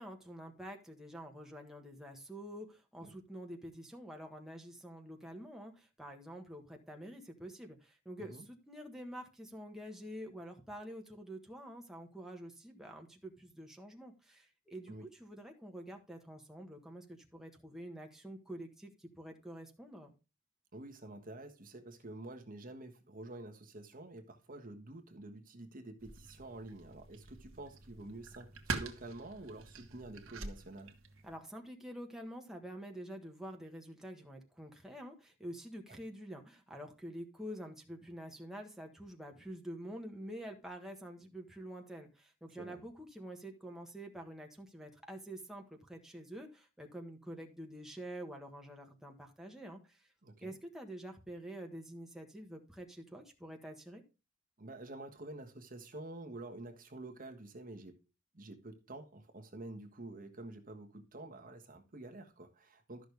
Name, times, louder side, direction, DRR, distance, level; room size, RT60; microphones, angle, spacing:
voice 1, 0.0-20.1 31.2-50.1 50.4-54.0, equal, ahead, 1.5 m, -47 dB
voice 2, 20.7-30.9 35.9-36.0 42.6-42.8 50.2-50.6 54.6-58.0 58.3-63.1, right 2 dB, 45° right, 1.5 m, -48 dB
sound 1, 26.0-31.4, right 4 dB, 75° right, 1.6 m, -45 dB
12.5 x 6.4 x 3.5 m
head